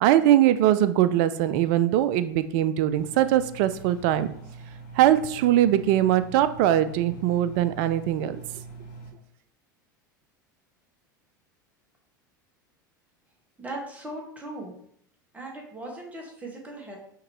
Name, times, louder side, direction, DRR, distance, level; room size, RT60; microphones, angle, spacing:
voice 1, 0.0-4.3 5.0-8.4, right 12 dB, 55° right, 13 dB, 0.4 m, -21 dB
Engine, 2.9-9.1, right 4 dB, 60° left, 1.6 m, -43 dB
voice 2, 13.6-14.7 15.3-17.0, right 1 dB, 15° right, -1 dB, 1.6 m, -38 dB
5.8 x 3.0 x 3.1 m, 0.65 s
hypercardioid pair, 80°, 11 cm